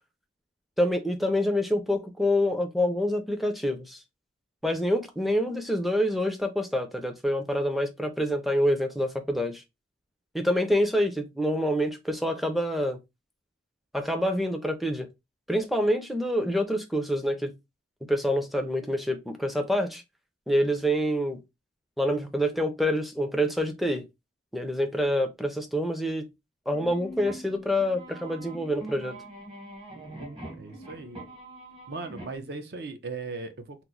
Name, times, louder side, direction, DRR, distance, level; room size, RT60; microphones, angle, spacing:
voice 1, 0.8-4.0 4.6-9.6 10.3-13.0 13.9-15.1 15.5-17.5 18.1-20.0 20.5-21.4 22.0-24.0 24.5-26.2 26.7-29.1, equal, ahead, 0.4 m, -26 dB
sound 1, 26.7-32.4, right 1 dB, 25° right, 0.9 m, -43 dB
voice 2, 30.6-31.2 31.9-33.8, right 3 dB, 60° right, 0.6 m, -38 dB
2.9 x 2.0 x 3.7 m
head